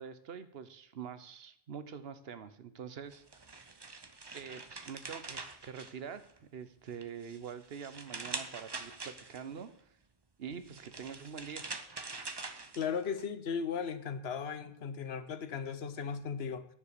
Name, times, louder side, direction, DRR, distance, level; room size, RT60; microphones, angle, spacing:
voice 1, 0.0-3.2 4.3-6.2 6.5-9.7 10.4-11.7, right 7 dB, 75° right, 12 dB, 1.1 m, -45 dB
sound 1, 3.1-6.5 6.9-9.6 10.5-13.2, right 3 dB, 25° right, 0.7 m, -44 dB
voice 2, 12.8-16.7, left 6 dB, 85° left, 12 dB, 1.1 m, -36 dB
10.0 x 7.1 x 6.7 m, 0.69 s
omnidirectional pair, 1.0 m